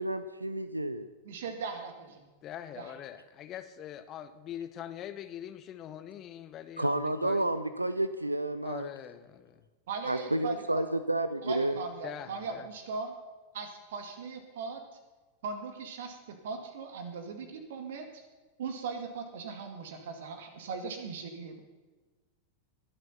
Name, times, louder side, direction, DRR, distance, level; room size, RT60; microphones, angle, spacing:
voice 1, 0.0-1.1 6.8-8.9 10.1-11.8, right 1 dB, 85° right, 13 dB, 0.6 m, -30 dB
voice 2, 1.2-2.2 2.8-2.9 9.9-10.8 11.4-13.1 13.5-14.8 15.4-18.2 18.6-21.6, right 5 dB, 55° right, 7 dB, 2.3 m, -39 dB
voice 3, 2.4-7.5 8.6-9.6 12.0-12.7, left 10 dB, 35° left, 12 dB, 0.9 m, -43 dB
22.0 x 7.7 x 5.7 m, 1.3 s
figure-of-eight pair, 90°, 0 cm